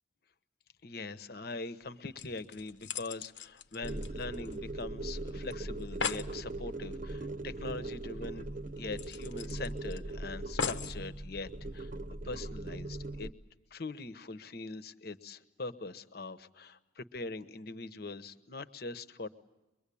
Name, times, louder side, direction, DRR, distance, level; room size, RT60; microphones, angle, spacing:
voice 1, 0.8-8.5 8.8-11.9 12.2-13.3 13.7-19.3, left 3 dB, 60° left, 12 dB, 1.1 m, -42 dB
sound 1, 1.8-1.9 2.2-4.8 5.1-5.2 5.5-5.6 5.8-6.3 7.8-7.9 8.3-8.4 9.0-10.0 10.6-11.0 11.7-11.8, left 5 dB, 85° left, 1.1 m, -38 dB
sound 2, 3.8-13.3, right 2 dB, 45° right, 0.9 m, -40 dB
23.5 x 23.0 x 8.5 m, 1.0 s
head